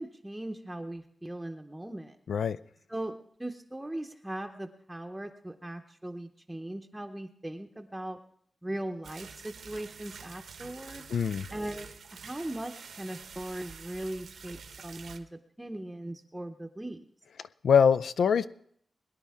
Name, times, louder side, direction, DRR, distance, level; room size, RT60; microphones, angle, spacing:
voice 1, 0.0-2.2 2.9-8.2 8.6-11.0 11.5-17.1, right 1 dB, 10° right, 0.7 m, -39 dB
sound 1, 9.0-15.2, right 6 dB, 90° right, 1.1 m, -47 dB
voice 2, 11.1-11.5 17.6-18.5, left 7 dB, 80° left, 0.4 m, -23 dB
22.0 x 10.5 x 3.6 m
wide cardioid pair, 100°, 0 cm